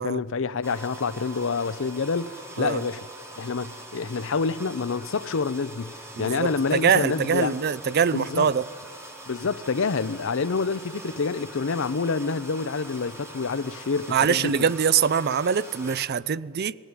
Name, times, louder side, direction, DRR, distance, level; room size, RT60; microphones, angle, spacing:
voice 1, 0.0-3.1 3.4-7.6 8.1-8.5 9.3-14.7, left 4 dB, 65° left, 0.6 m, -27 dB
sound 1, 0.6-16.1, right 2 dB, 10° right, 2.3 m, -43 dB
voice 2, 6.2-8.6 14.1-16.8, right 7 dB, 50° right, 0.5 m, -23 dB
20.5 x 15.5 x 9.7 m
head